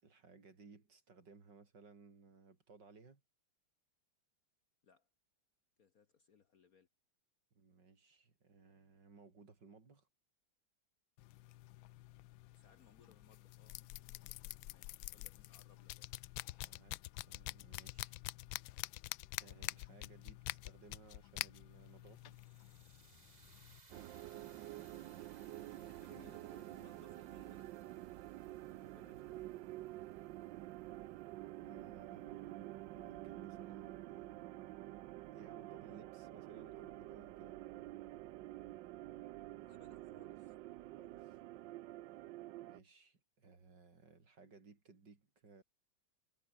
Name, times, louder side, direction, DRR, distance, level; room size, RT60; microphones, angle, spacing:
voice 1, 0.0-3.2 7.5-10.1 16.5-18.2 19.3-22.4 24.9-25.9 28.8-29.2 31.6-34.6 35.3-37.6 41.0-41.4 42.6-45.6, right 4 dB, 55° right, 4.0 m, -61 dB
voice 2, 5.8-6.9 12.5-16.1 23.9-24.1 26.0-28.0 28.7-29.6 39.6-40.5, left 7 dB, 50° left, 1.4 m, -67 dB
sound 1, 11.2-23.8, left 18 dB, 75° left, 1.3 m, -47 dB
sound 2, 21.7-31.9, right 3 dB, 20° right, 2.0 m, -67 dB
sound 3, 23.9-42.8, right 16 dB, 70° right, 1.1 m, -49 dB
omnidirectional pair, 2.3 m